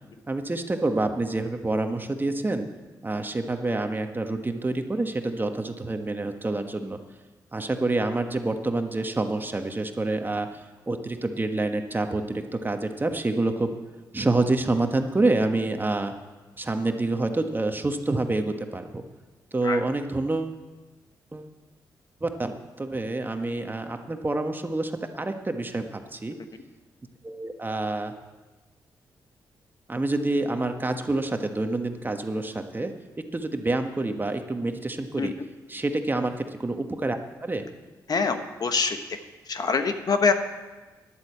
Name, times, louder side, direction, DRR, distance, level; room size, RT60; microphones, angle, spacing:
voice 1, 0.3-2.7 3.0-7.0 7.5-13.7 14.1-16.1 16.6-19.0 19.5-20.6 21.3-21.5 22.2-22.5 22.8-26.4 27.2-28.1 29.9-32.9 33.3-35.3 35.7-37.7, right 2 dB, 25° right, 6 dB, 1.3 m, -27 dB
voice 2, 38.1-39.0 39.5-40.3, left 5 dB, 55° left, 8 dB, 1.2 m, -24 dB
10.5 x 8.1 x 8.1 m, 1.2 s
supercardioid pair, 55°, 8 cm